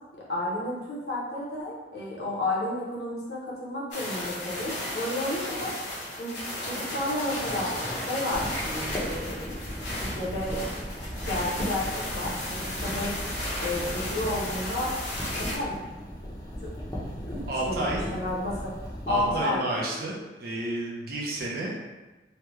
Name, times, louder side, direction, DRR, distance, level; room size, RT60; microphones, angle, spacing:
voice 1, 0.1-5.7 6.2-7.7 8.1-10.7 11.1-13.1 13.6-14.9 15.3-15.7 16.6-16.7 17.2-18.7 19.1-19.6, left 1 dB, 60° left, -5 dB, 0.9 m, -32 dB
sound 1, 3.9-15.6, left 1 dB, 80° left, 1.0 m, -34 dB
sound 2, 8.3-19.4, equal, 20° left, 0.6 m, -36 dB
voice 2, 17.5-18.0 19.1-21.7, right 1 dB, 55° right, -4 dB, 0.7 m, -31 dB
3.3 x 2.3 x 3.0 m, 1.1 s
head